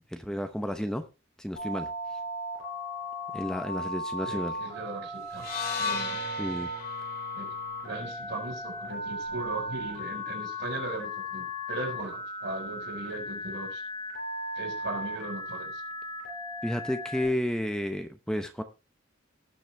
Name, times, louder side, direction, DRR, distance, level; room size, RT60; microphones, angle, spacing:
voice 1, 0.1-1.0 1.4-1.9 3.3-4.6 6.4-6.7 16.6-18.6, equal, 5° left, 8 dB, 0.8 m, -31 dB
Telephone, 1.6-17.3, left 1 dB, 75° left, 5.7 m, -36 dB
voice 2, 4.2-5.4 5.8-6.2 7.3-7.5 7.8-13.8 14.6-15.8, right 2 dB, 65° right, 4 dB, 4.3 m, -38 dB
sound 1, 5.3-9.5, left 5 dB, 50° left, 2.9 m, -37 dB
18.5 x 6.2 x 3.3 m, 0.28 s
head